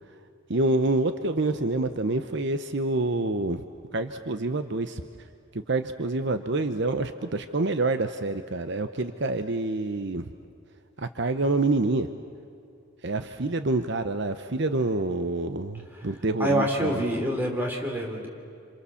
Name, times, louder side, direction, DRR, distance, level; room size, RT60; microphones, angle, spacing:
voice 1, 0.5-3.6 3.9-5.0 5.5-10.3 11.0-12.1 13.0-17.0, right 2 dB, 55° right, 9 dB, 0.8 m, -27 dB
voice 2, 16.4-18.3, right 1 dB, 10° right, 0 dB, 3.5 m, -26 dB
28.0 x 27.5 x 7.1 m, 2.6 s
head